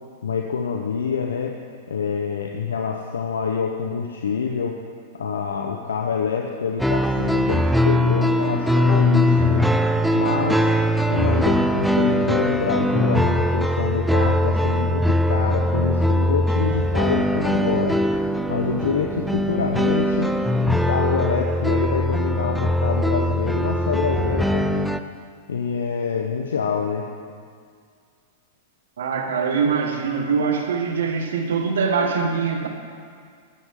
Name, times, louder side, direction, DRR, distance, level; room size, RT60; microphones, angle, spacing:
voice 1, 0.2-1.6 1.9-4.8 5.1-9.7 10.1-10.7 11.1-18.0 18.5-20.3 20.7-25.0 25.5-27.1, left 6 dB, 80° left, 2 dB, 1.0 m, -26 dB
sound 1, 6.8-25.0, left 1 dB, ahead, 0.6 m, -21 dB
voice 2, 29.0-32.7, right 5 dB, 75° right, 3 dB, 1.9 m, -23 dB
14.0 x 13.0 x 3.8 m, 2.1 s
hypercardioid pair, 105°, 0 cm